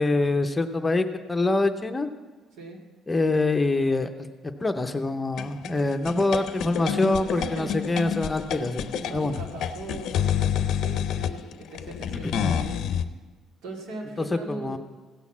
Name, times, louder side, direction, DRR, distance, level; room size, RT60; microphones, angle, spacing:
voice 1, 0.0-2.1 3.1-4.1 4.6-8.9 9.1-9.4 12.2-12.5 14.2-14.8, left 2 dB, 15° left, 7 dB, 0.7 m, -25 dB
sound 1, 5.4-13.0, left 9 dB, 65° left, 0.6 m, -29 dB
voice 2, 6.8-7.9 8.5-12.9 13.6-14.8, right 2 dB, 85° right, 0 dB, 2.5 m, -39 dB
16.0 x 6.4 x 7.1 m, 1.4 s
cardioid pair, 140°, 0 cm